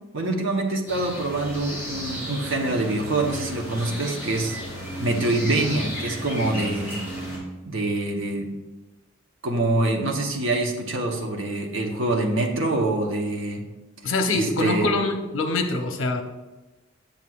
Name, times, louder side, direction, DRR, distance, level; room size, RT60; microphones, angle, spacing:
voice 1, 0.1-4.6 5.0-7.0 7.6-8.5 9.4-13.6 14.3-14.9, right 2 dB, 70° right, 1 dB, 0.9 m, -25 dB
sound 1, 0.9-7.4, equal, 10° right, 2.3 m, -33 dB
voice 2, 14.0-16.2, left 2 dB, 70° left, 5 dB, 0.8 m, -24 dB
7.7 x 7.0 x 2.4 m, 1.1 s
head